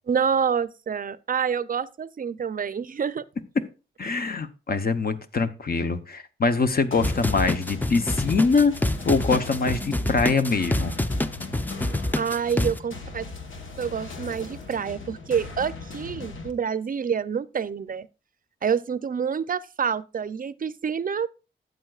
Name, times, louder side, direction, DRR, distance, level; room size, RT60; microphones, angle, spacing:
voice 1, 0.1-3.2 4.1-4.2 12.1-13.3 13.8-18.1 18.6-21.3, right 7 dB, 45° right, 0.5 m, -27 dB
voice 2, 4.0-8.7 9.0-10.9, left 4 dB, 50° left, 0.8 m, -23 dB
sound 1, 6.9-16.5, left 3 dB, 80° left, 1.2 m, -39 dB
sound 2, 7.0-12.8, left 1 dB, 10° left, 0.5 m, -26 dB
12.5 x 7.9 x 2.4 m
cardioid pair, 70°, 20 cm